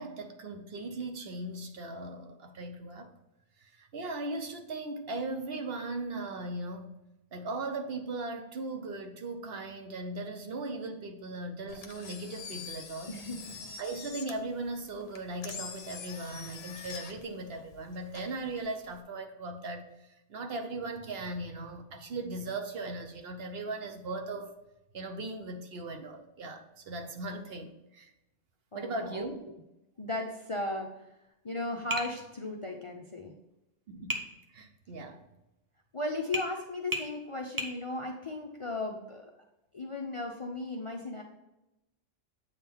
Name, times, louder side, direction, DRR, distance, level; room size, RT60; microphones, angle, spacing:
voice 1, 0.0-3.1 3.6-6.9 7.3-13.2 13.8-19.9 20.3-24.5 24.9-28.1 28.7-29.4 33.9-34.2 34.5-35.2, right 2 dB, 60° right, 5 dB, 0.9 m, -38 dB
Engine, 11.7-19.0, left 5 dB, 60° left, 1.0 m, -45 dB
voice 2, 13.1-13.7 28.7-29.3 30.0-30.9 31.4-33.3 35.9-39.3 39.7-41.2, left 2 dB, 35° left, 2 dB, 0.5 m, -36 dB
Tap, 31.9-32.2 34.1-34.3 36.3-36.5 36.9-37.1 37.6-37.8, equal, 20° right, 0.6 m, -33 dB
8.1 x 3.7 x 4.5 m, 0.93 s
omnidirectional pair, 1.2 m